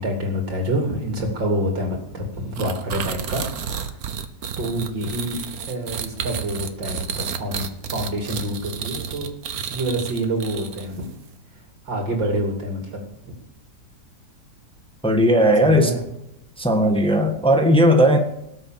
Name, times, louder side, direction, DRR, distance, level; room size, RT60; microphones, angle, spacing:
voice 1, 0.0-3.5 3.7-4.0 4.6-5.4 5.7-9.3 9.6-11.1 11.8-13.3 15.6-16.0, right 1 dB, 80° right, 1 dB, 3.4 m, -27 dB
sound 1, 2.6-11.1, right 7 dB, 55° right, 1.4 m, -31 dB
voice 2, 15.0-15.9 16.6-18.2, equal, 5° left, 3 dB, 1.5 m, -16 dB
18.5 x 7.8 x 7.5 m, 0.85 s
omnidirectional pair, 2.0 m